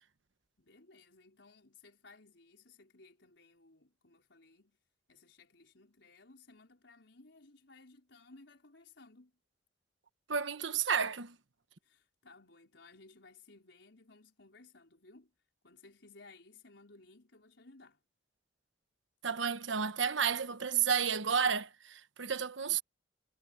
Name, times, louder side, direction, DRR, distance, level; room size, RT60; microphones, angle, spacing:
voice 1, 0.6-4.8 5.1-9.3 11.8-15.3 15.6-18.0, left 3 dB, 75° left, 4.6 m, -59 dB
voice 2, 10.3-11.3 19.2-22.8, right 7 dB, 90° right, 1.2 m, -31 dB
head